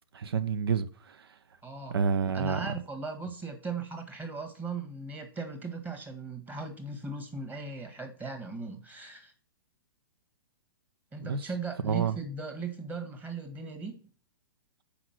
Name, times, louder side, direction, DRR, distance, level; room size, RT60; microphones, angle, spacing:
voice 1, 0.1-1.3 1.9-2.7 11.2-11.4 11.8-12.2, right 6 dB, 80° right, 0.6 m, -29 dB
voice 2, 1.6-2.0 2.3-9.3 11.1-14.0, right 3 dB, 15° right, 1.5 m, -38 dB
5.9 x 4.9 x 5.9 m
hypercardioid pair, 125°, 13 cm